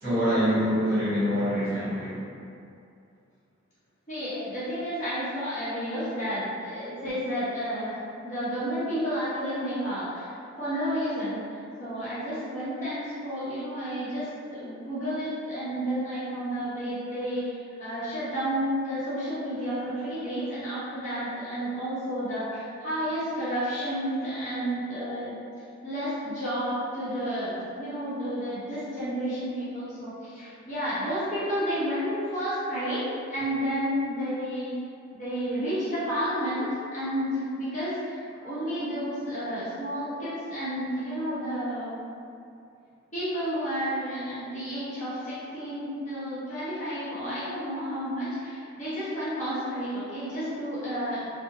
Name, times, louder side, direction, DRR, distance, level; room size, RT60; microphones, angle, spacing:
voice 1, 0.0-2.2 25.0-25.1 40.1-40.2, equal, 50° right, -12 dB, 1.2 m, -25 dB
voice 2, 4.1-8.0 8.2-10.3 10.6-11.4 11.8-25.4 25.8-34.7 35.1-42.0 43.1-51.3, equal, 40° left, -12 dB, 0.8 m, -31 dB
2.5 x 2.0 x 2.7 m, 2.5 s
head